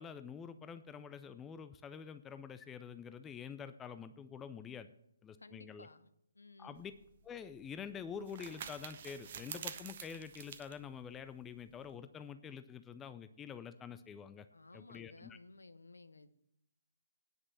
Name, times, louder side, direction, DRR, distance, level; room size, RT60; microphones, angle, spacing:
voice 1, 0.0-4.9 5.2-5.9 6.6-6.9 7.2-14.5 14.7-15.4, left 7 dB, 10° left, 12 dB, 0.4 m, -47 dB
voice 2, 5.3-6.1 6.3-6.8 14.5-16.3, left 2 dB, 75° left, 12 dB, 0.8 m, -56 dB
sound 1, 6.7-11.9, right 8 dB, 40° right, 0.8 m, -49 dB
9.6 x 6.1 x 7.5 m, 0.77 s
figure-of-eight pair, 135°, 0 cm